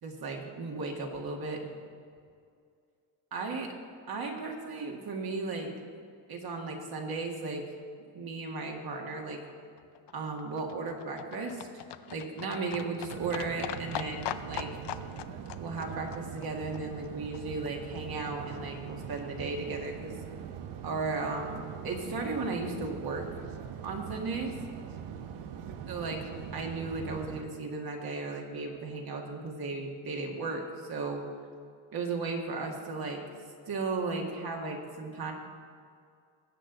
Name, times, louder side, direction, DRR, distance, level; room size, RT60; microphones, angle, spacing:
voice 1, 0.0-1.6 3.3-3.7 4.1-5.7 6.3-7.7 8.1-9.4 10.1-11.7 12.1-14.7 15.6-20.2 20.8-23.2 23.8-24.5 25.9-26.2 26.5-30.6 30.9-31.2 31.9-33.2 33.7-35.3, right 3 dB, 50° right, 1 dB, 2.0 m, -35 dB
Livestock farm animals working animals, 9.5-17.7 17.9-18.0 18.3-18.4 18.6-18.7 18.9-19.0 19.2-19.3 19.5-19.6 19.8-19.9 20.1-20.2, left 11 dB, 60° left, 0.6 m, -42 dB
sound 1, 13.1-27.4, right 8 dB, 85° right, 0.9 m, -42 dB
20.0 x 7.9 x 4.0 m, 2.3 s
cardioid pair, 125°, 48 cm